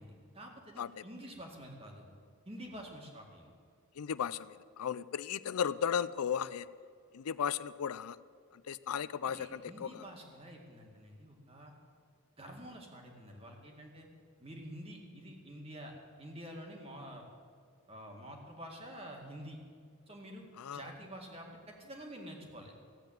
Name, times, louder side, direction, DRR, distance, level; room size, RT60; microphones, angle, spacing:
voice 1, 0.0-2.0 2.5-3.5 9.3-11.7 12.4-14.1 14.4-15.9 16.2-17.3 17.9-19.6 20.1-22.7, equal, 25° right, 1 dB, 2.2 m, -48 dB
voice 2, 4.0-6.7 7.1-8.2 8.5-10.0 20.6-20.8, left 8 dB, 85° left, 17 dB, 0.4 m, -35 dB
15.5 x 8.1 x 9.0 m, 2.2 s
head